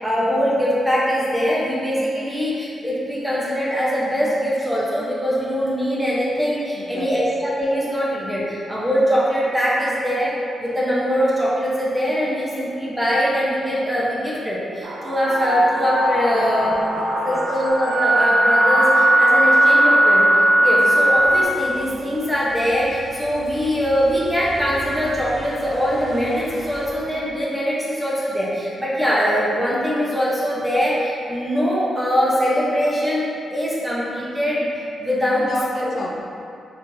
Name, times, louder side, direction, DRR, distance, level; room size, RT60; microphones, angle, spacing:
voice 1, 0.0-10.3 10.6-16.7 17.2-20.2 20.6-33.3 33.5-35.5 35.8-35.9, equal, 10° right, -7 dB, 0.9 m, -22 dB
voice 2, 6.8-7.3 16.3-17.6 35.3-36.2, left 1 dB, 60° left, -3 dB, 0.5 m, -32 dB
sound 1, 14.8-21.4, right 1 dB, 75° right, 0.4 m, -17 dB
sound 2, 21.1-26.9, right 1 dB, 35° right, 0.9 m, -40 dB
4.0 x 3.3 x 2.7 m, 2.6 s
cardioid pair, 95°, 0 cm